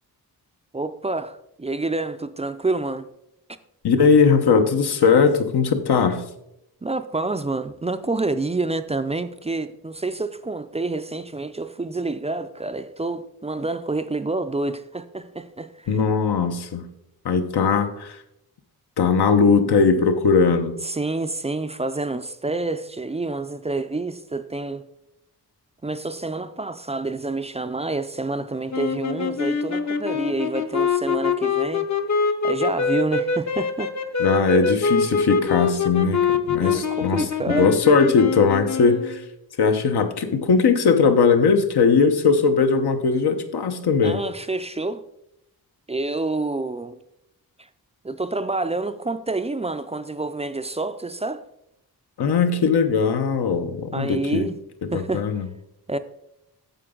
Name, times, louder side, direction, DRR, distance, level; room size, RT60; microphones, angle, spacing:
voice 1, 0.7-3.1 6.8-15.9 20.8-24.9 25.8-31.9 32.4-33.9 36.5-37.7 44.0-45.1 45.9-47.0 48.0-51.4 53.9-54.5 54.9-55.3 55.9-56.0, right 2 dB, 20° right, 0.3 m, -28 dB
voice 2, 3.8-6.2 15.9-16.9 17.2-18.2 19.0-20.8 34.2-39.2 39.6-44.2 52.2-54.5 54.9-55.5, left 5 dB, 80° left, 1.0 m, -19 dB
sound 1, 28.7-39.2, left 5 dB, 45° left, 0.7 m, -24 dB
9.2 x 6.9 x 3.8 m
wide cardioid pair, 135°, 38 cm